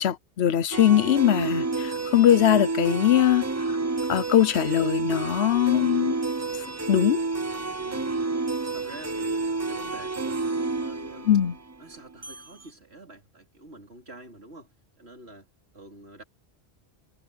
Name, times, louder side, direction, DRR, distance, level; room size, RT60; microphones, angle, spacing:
voice 1, 0.0-3.4 4.1-6.2 6.9-7.2 11.3-11.5, left 11 dB, 85° left, 1.0 m, -21 dB
sound 1, 0.7-12.5, right 3 dB, 20° right, 0.7 m, -30 dB
voice 2, 7.8-8.3 8.7-11.3 11.8-15.5 15.7-16.2, right 2 dB, 85° right, 4.2 m, -47 dB
omnidirectional pair, 1.1 m